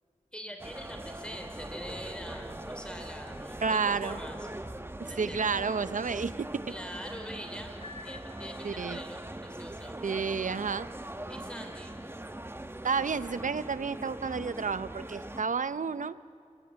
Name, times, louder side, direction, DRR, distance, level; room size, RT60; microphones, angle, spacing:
voice 1, 0.3-4.5 5.0-5.5 6.7-10.0 11.3-11.9, equal, 10° left, 4 dB, 2.9 m, -43 dB
sound 1, 0.6-15.4, right 1 dB, 20° right, 1.0 m, -42 dB
voice 2, 3.6-4.2 5.0-6.5 8.6-9.0 10.0-10.9 12.8-16.2, right 5 dB, 90° right, 15 dB, 0.6 m, -31 dB
Piano, 7.8-9.1, left 3 dB, 50° left, 3.9 m, -48 dB
27.5 x 22.5 x 8.8 m, 2.3 s
wide cardioid pair, 75°, 13 cm